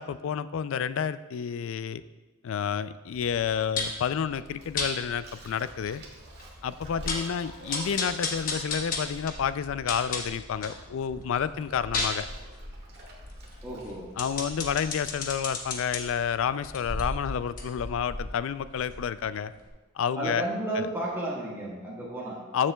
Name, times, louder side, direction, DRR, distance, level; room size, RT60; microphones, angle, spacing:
voice 1, 0.0-2.0 2.4-6.0 6.6-12.3 14.2-19.5 19.9-20.5 20.7-20.9 22.5-22.7, left 7 dB, 65° left, 15 dB, 0.3 m, -30 dB
sound 1, 3.1-18.0, equal, 80° left, 2.2 m, -51 dB
sound 2, 3.8-4.0 4.8-4.9 5.5-5.6 5.9-6.0 6.4-6.5 6.8-7.3 7.7-10.8 11.2-16.0 16.6-19.3 19.6-19.7, left 3 dB, 40° left, 1.1 m, -34 dB
Bathtub (filling or washing), 4.5-10.3 10.6-14.1, right 2 dB, 50° right, 1.6 m, -51 dB
voice 2, 13.6-14.1 20.2-22.4, right 1 dB, 10° right, -6 dB, 1.5 m, -32 dB
13.0 x 7.4 x 2.3 m, 1.2 s
head